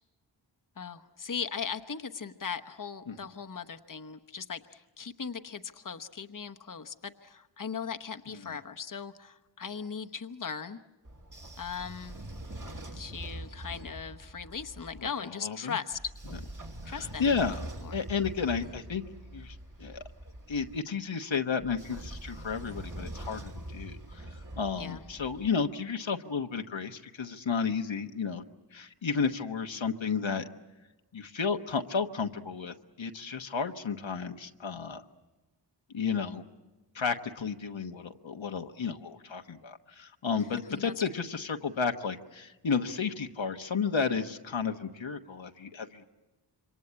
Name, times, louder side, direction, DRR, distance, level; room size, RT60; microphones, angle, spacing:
voice 1, 0.8-10.8 11.6-12.2 12.9-16.0 16.9-17.3 17.8-18.0 24.8-25.0 36.2-36.3 40.7-40.9, left 6 dB, 45° left, 6 dB, 1.0 m, -38 dB
Train / Sliding door, 11.0-15.1 15.9-20.8 21.6-25.5, right 1 dB, 40° right, 2.7 m, -43 dB
voice 2, 15.4-15.8 16.8-17.6 17.9-19.0 19.3-20.0 20.5-24.3 24.6-28.4 28.7-30.4 31.1-35.0 35.9-36.4 36.9-46.0, left 5 dB, 85° left, 5 dB, 1.3 m, -32 dB
27.0 x 24.0 x 8.7 m, 1.1 s
wide cardioid pair, 65°, 45 cm